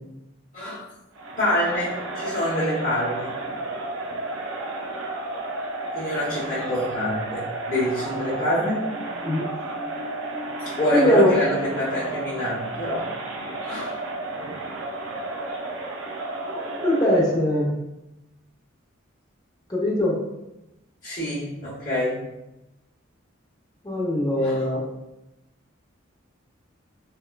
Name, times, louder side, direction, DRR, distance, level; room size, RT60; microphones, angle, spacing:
Crowd, 1.1-17.3, right 2 dB, 80° right, 0.5 m, -32 dB
voice 1, 1.4-3.3 5.9-8.9 10.6-13.1 13.6-14.0 21.0-22.2 24.4-24.6, equal, 40° left, -11 dB, 0.9 m, -26 dB
voice 2, 10.9-11.4 16.5-17.7 19.7-20.2 23.8-24.8, left 1 dB, 20° left, -3 dB, 0.6 m, -21 dB
4.1 x 2.2 x 2.2 m, 0.95 s
head